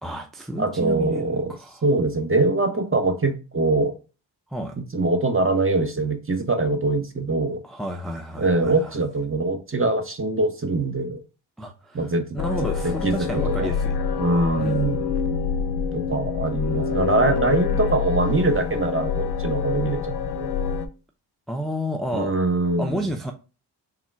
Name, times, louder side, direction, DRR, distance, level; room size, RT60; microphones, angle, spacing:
voice 1, 0.0-1.8 4.5-4.8 7.6-8.9 11.6-12.1 12.3-14.0 14.6-15.0 21.5-22.4 22.8-23.3, equal, ahead, 0.6 m, -31 dB
voice 2, 0.6-1.5 1.8-3.9 4.8-7.6 8.4-11.2 11.9-12.3 12.8-13.7 14.2-15.0 15.9-20.6 22.1-23.1, right 2 dB, 25° right, 1.0 m, -23 dB
sound 1, 12.4-20.9, left 6 dB, 50° left, 0.7 m, -26 dB
3.6 x 2.4 x 4.5 m
supercardioid pair, 40°, 49 cm